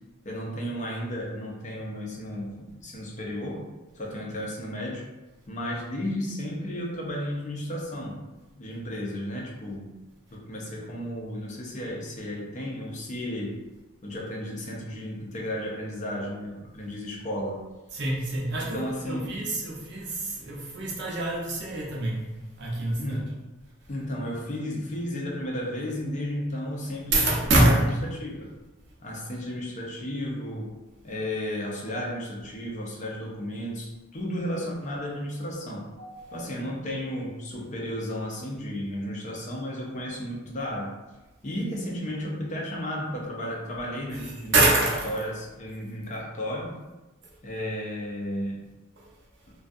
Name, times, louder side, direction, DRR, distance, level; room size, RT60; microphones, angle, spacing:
voice 1, 0.2-3.6 3.9-5.0 5.5-8.2 8.6-10.0 10.3-13.6 14.0-17.7 18.5-19.3 23.0-23.3 23.9-28.5 29.0-30.8 31.0-35.9 36.3-40.9 41.4-44.6 44.8-46.7 47.4-48.6, equal, 40° left, -2 dB, 0.5 m, -33 dB
voice 2, 17.9-22.2 22.6-23.2 27.1-27.8 36.0-36.3 44.1-45.1 49.0-49.1, right 2 dB, 60° right, -4 dB, 0.6 m, -25 dB
2.3 x 2.3 x 2.6 m, 1.1 s
head